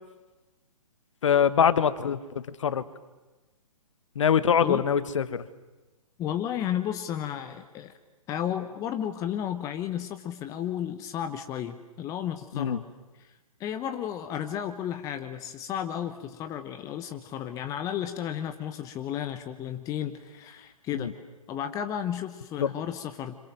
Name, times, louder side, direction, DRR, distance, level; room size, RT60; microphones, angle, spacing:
voice 1, 1.2-2.8 4.1-5.5 12.5-12.8 20.9-21.1 22.6-22.7, left 8 dB, 55° left, 14 dB, 1.5 m, -24 dB
voice 2, 6.2-7.9 8.3-12.8 13.2-13.3 13.6-21.2 21.5-23.3, left 10 dB, 20° left, 8 dB, 1.1 m, -33 dB
27.0 x 26.5 x 7.5 m, 1.1 s
figure-of-eight pair, 130°, 19 cm